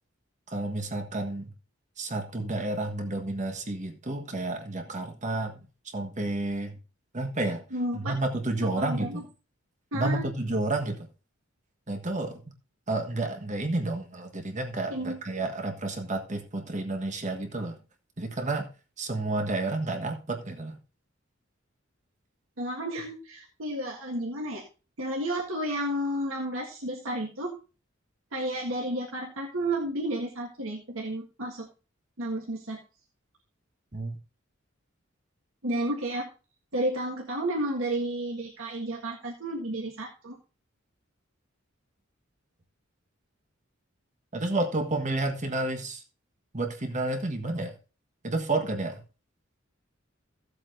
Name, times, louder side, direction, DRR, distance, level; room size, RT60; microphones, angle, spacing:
voice 1, 0.5-1.5 2.0-5.6 5.9-6.7 7.1-7.6 7.9-9.3 9.9-11.1 11.9-12.4 12.9-17.8 18.2-18.7 19.0-20.8 33.9-34.2 44.3-46.0 46.5-47.7 48.2-49.0, right 2 dB, 35° right, 1.4 m, -30 dB
voice 2, 7.7-8.1 8.8-9.2 9.9-10.3 14.9-15.2 22.6-24.6 25.0-27.5 28.3-31.7 32.2-32.8 35.6-36.3 36.7-40.4, right 1 dB, 85° right, 1.8 m, -31 dB
15.5 x 8.0 x 2.7 m
head